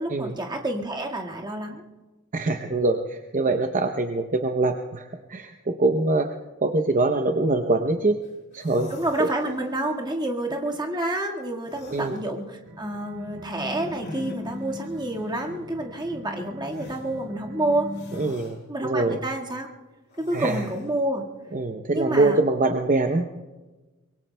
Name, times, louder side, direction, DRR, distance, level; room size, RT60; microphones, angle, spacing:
voice 1, 0.0-1.8 8.9-17.9 18.7-19.7 20.2-21.2 21.9-22.4, right 1 dB, 20° right, 0 dB, 1.7 m, -29 dB
voice 2, 2.3-6.3 6.6-8.2 8.5-8.9 11.9-12.2 18.2-19.3 20.3-20.7 21.5-23.3, right 2 dB, 40° right, 6 dB, 0.7 m, -24 dB
sound 1, 8.2-8.3 8.5-9.8 11.6-12.2 13.8-14.6 16.7-17.0 17.9-18.6 20.1-20.9, left 1 dB, 50° left, 2.6 m, -42 dB
sound 2, 12.6-18.3, left 1 dB, 60° right, 3.7 m, -39 dB
24.5 x 22.5 x 2.2 m, 1.2 s
head